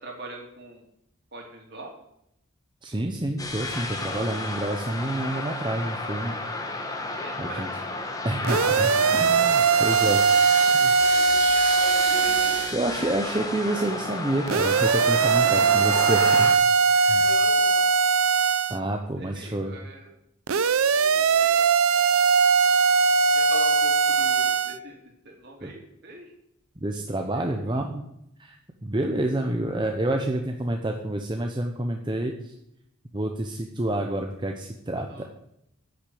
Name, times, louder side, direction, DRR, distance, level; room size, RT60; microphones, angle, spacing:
voice 1, 0.0-0.8 1.3-1.9 7.1-7.7 9.7-10.0 10.6-11.4 17.1-17.8 19.2-20.1 20.6-21.7 23.3-25.0 25.2-26.3 27.3-27.8 35.1-35.2, right 2 dB, 50° right, 1 dB, 3.1 m, -42 dB
voice 2, 2.8-6.3 7.4-7.7 8.2-10.2 10.7-10.9 12.7-16.5 16.9-17.3 18.7-19.7 25.6-25.7 26.8-28.0 28.4-28.6 28.8-32.5 33.1-35.2, right 1 dB, 20° right, 3 dB, 0.8 m, -28 dB
sound 1, 3.4-16.6, left 2 dB, 15° left, 1.3 m, -32 dB
sound 2, 8.4-12.8 14.5-18.8 20.5-24.8, right 5 dB, 85° right, 0.6 m, -20 dB
10.5 x 6.6 x 8.5 m, 0.79 s
head